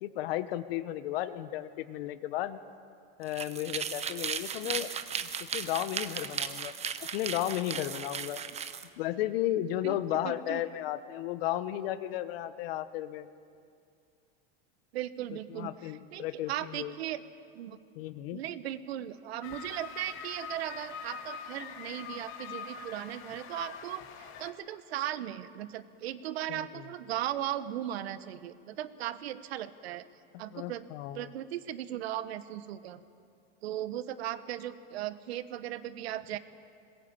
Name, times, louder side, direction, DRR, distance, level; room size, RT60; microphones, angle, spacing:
voice 1, 0.0-2.6 3.2-4.9 5.2-6.7 7.0-8.4 9.0-13.3 15.5-16.9 17.9-18.4 26.5-26.8 30.3-31.3, left 13 dB, 70° left, 12 dB, 1.4 m, -34 dB
sound 1, 3.2-8.9, right 7 dB, 20° right, 0.9 m, -36 dB
voice 2, 10.2-10.6 14.9-17.2 17.5-17.8 18.3-30.1 30.4-30.9 31.1-33.0 33.6-36.4, right 12 dB, 85° right, 13 dB, 1.3 m, -37 dB
sound 2, 19.4-24.5, left 6 dB, 45° left, 2.4 m, -43 dB
21.0 x 20.5 x 9.0 m, 2.3 s
supercardioid pair, 135°, 30 cm